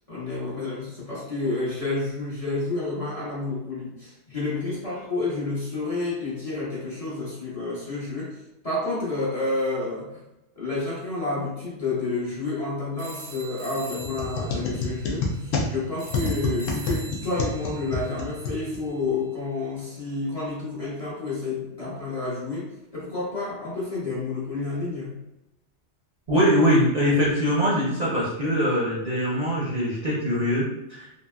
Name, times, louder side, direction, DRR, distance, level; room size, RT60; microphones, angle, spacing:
voice 1, 0.1-8.4 8.6-10.1 10.6-25.2, left 3 dB, 35° left, -8 dB, 0.8 m, -30 dB
sound 1, 13.0-19.1, right 2 dB, 70° right, 0.9 m, -44 dB
sound 2, 14.0-19.1, left 3 dB, 90° left, 1.0 m, -29 dB
voice 2, 26.3-31.1, equal, 40° right, -7 dB, 0.6 m, -22 dB
2.9 x 2.7 x 2.2 m, 0.91 s
omnidirectional pair, 1.3 m